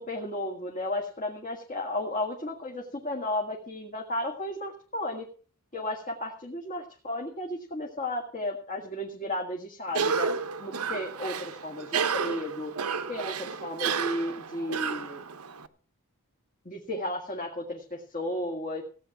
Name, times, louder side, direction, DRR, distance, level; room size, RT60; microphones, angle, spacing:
voice 1, 0.0-5.3 5.7-10.3 10.6-12.7 13.1-15.2 16.7-18.8, left 1 dB, 35° left, 0 dB, 1.8 m, -34 dB
Cough, 9.9-15.7, right 5 dB, 75° right, 0.9 m, -31 dB
16.5 x 9.0 x 5.9 m, 0.43 s
head